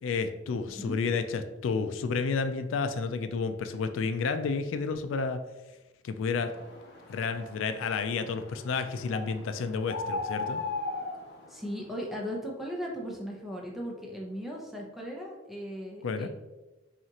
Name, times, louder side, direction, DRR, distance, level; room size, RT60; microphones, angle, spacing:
voice 1, 0.0-5.4 6.0-6.5 7.1-10.6 16.0-16.3, left 4 dB, 80° left, 9 dB, 0.3 m, -31 dB
voice 2, 0.7-1.0 11.5-16.3, equal, ahead, -2 dB, 0.7 m, -37 dB
sound 1, 6.4-12.0, left 3 dB, 55° left, 0.9 m, -38 dB
5.7 x 2.4 x 2.9 m, 1.1 s
head